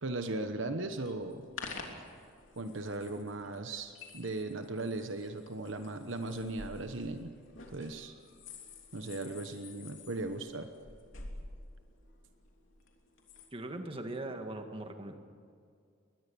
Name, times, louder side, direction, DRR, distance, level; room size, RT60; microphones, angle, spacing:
voice 1, 0.0-1.4 2.6-7.3 7.7-8.1 8.9-10.7, right 2 dB, 65° right, 7 dB, 1.2 m, -37 dB
sound 1, 1.0-13.5, left 3 dB, 65° left, 3.2 m, -50 dB
voice 2, 13.5-15.2, right 2 dB, 25° right, 5 dB, 1.8 m, -40 dB
22.0 x 19.5 x 7.0 m, 2.4 s
head